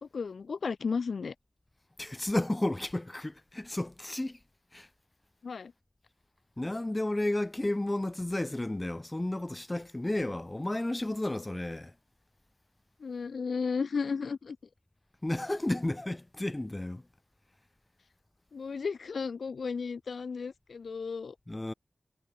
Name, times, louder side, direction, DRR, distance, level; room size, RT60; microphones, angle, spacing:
voice 1, 0.0-1.3 5.4-5.7 13.0-14.6 18.5-21.3, left 5 dB, 85° left, 1.1 m, -34 dB
voice 2, 2.0-4.4 4.7-4.9 6.6-11.9 15.2-17.0 21.5-21.7, left 1 dB, 20° left, 1.3 m, -32 dB
wide cardioid pair, 75°, 0 cm